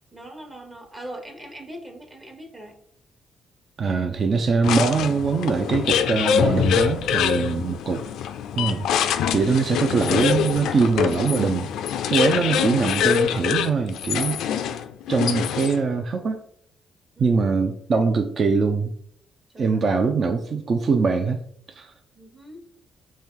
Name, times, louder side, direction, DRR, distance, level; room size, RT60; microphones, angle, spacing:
voice 1, 0.1-2.8 17.2-17.4 19.5-19.8 22.1-22.6, right 1 dB, 25° right, 2 dB, 1.0 m, -41 dB
voice 2, 3.8-8.0 8.6-8.9 9.3-11.7 12.1-14.4 15.1-16.4 17.2-18.9 19.6-21.4 21.7-21.9, right 4 dB, 50° right, 6 dB, 0.5 m, -22 dB
sound 1, 4.6-15.9, left 8 dB, 85° left, 0.3 m, -24 dB
4.4 x 3.2 x 3.7 m, 0.65 s
cardioid pair, 90°, 0 cm